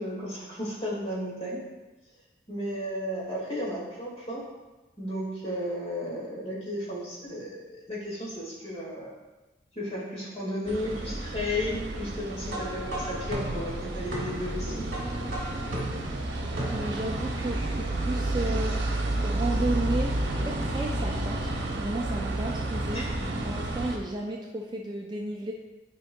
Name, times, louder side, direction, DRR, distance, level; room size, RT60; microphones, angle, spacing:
voice 1, 0.0-1.6 2.5-4.4 5.0-9.1 9.8-14.9 22.9-23.3, left 1 dB, 35° left, -6 dB, 1.8 m, -34 dB
sound 1, 10.7-24.0, right 1 dB, 70° right, 0.8 m, -31 dB
sound 2, 12.4-17.2, right 1 dB, 50° right, 1.5 m, -37 dB
voice 2, 16.6-21.5 21.8-23.1 23.4-25.5, right 2 dB, 25° right, 0 dB, 0.3 m, -33 dB
9.6 x 4.5 x 2.2 m, 1.2 s
head